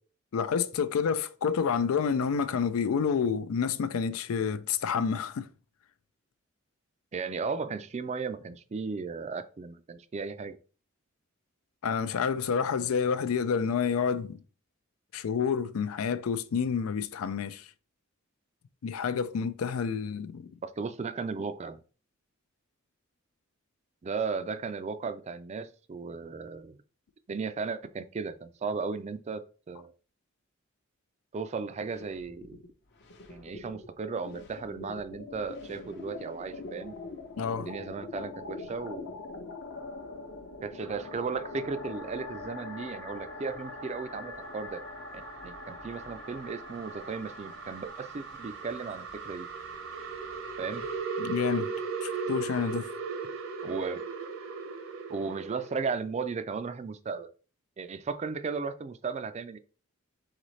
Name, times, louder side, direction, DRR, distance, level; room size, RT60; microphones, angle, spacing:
voice 1, 0.3-5.5 11.8-14.4 15.1-17.7 18.8-20.5 37.4-37.7 51.2-51.7 52.0-52.9, left 6 dB, 90° left, 0.4 m, -29 dB
voice 2, 7.1-10.6 20.6-21.8 24.0-26.8 27.3-29.9 31.3-32.6 33.3-36.9 37.6-39.1 40.6-44.8 45.1-49.5 50.6-50.9 53.6-54.0 55.1-57.3 57.8-59.6, right 4 dB, 30° right, 0.3 m, -35 dB
sound 1, 31.9-32.7 33.0-51.0, left 3 dB, 55° left, 0.8 m, -44 dB
sound 2, 40.8-55.9, right 5 dB, 65° right, 0.8 m, -39 dB
4.0 x 3.9 x 3.1 m
head